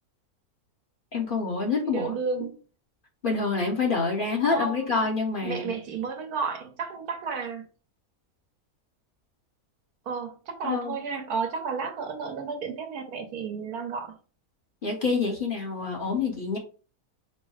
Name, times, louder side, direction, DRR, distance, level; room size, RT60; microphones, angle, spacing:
voice 1, 1.1-2.1 3.2-5.7 10.6-11.0 14.8-16.6, left 4 dB, 40° left, 1.0 m, -27 dB
voice 2, 1.9-2.6 4.5-4.9 5.4-7.6 10.1-14.1, right 5 dB, 85° right, 1.4 m, -32 dB
5.4 x 2.1 x 4.8 m
omnidirectional pair, 1.6 m